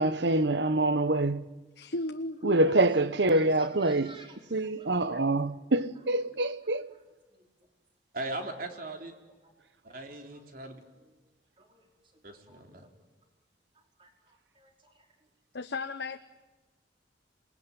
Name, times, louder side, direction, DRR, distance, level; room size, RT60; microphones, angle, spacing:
voice 1, 0.0-1.5 2.4-4.1 4.5-6.9, right 2 dB, 75° right, 1.2 m, -25 dB
voice 2, 1.8-2.9 4.9-5.2 15.5-16.2, left 2 dB, 65° left, 1.0 m, -36 dB
voice 3, 3.2-4.4 4.6-5.6 5.9-6.0 6.3-7.7 8.6-8.7 9.4-9.5 9.9-10.0 10.3-11.2 11.6-12.9 13.7-15.3, right 2 dB, 30° right, 5.0 m, -56 dB
voice 4, 8.1-9.1 9.8-10.8 12.2-12.9, right 2 dB, 55° right, 3.6 m, -39 dB
27.5 x 20.5 x 10.0 m
head